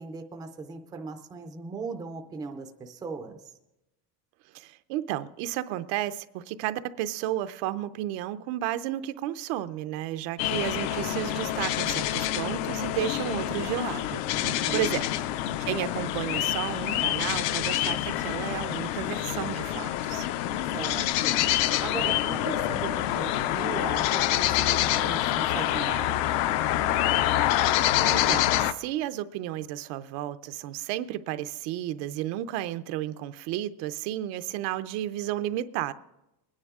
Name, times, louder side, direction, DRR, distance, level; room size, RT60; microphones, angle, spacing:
voice 1, 0.0-3.4 14.4-14.9 20.7-21.4 21.8-26.3, right 4 dB, 10° right, 5 dB, 0.4 m, -38 dB
voice 2, 4.5-14.2 14.7-15.0 15.7-20.3 27.6-27.7 28.1-35.9, right 13 dB, 75° right, 12 dB, 0.7 m, -32 dB
sound 1, 10.4-28.7, left 13 dB, 60° left, 0.6 m, -26 dB
21.0 x 9.9 x 3.6 m, 0.93 s
cardioid pair, 180°, 44 cm